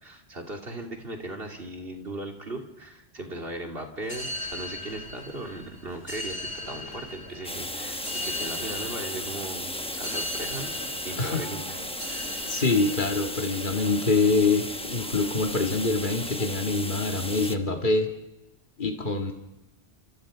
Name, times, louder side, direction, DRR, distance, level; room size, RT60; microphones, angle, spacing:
voice 1, 0.0-10.7 11.0-11.6 12.1-12.6, right 2 dB, 65° right, 2 dB, 3.4 m, -38 dB
sound 1, 4.0-17.5, left 1 dB, 85° left, 6.8 m, -39 dB
sound 2, 7.4-17.6, left 1 dB, 5° left, 0.9 m, -35 dB
voice 2, 12.1-18.1 18.8-19.3, left 3 dB, 50° left, 3 dB, 2.2 m, -25 dB
28.0 x 27.5 x 5.1 m, 0.96 s
omnidirectional pair, 1.1 m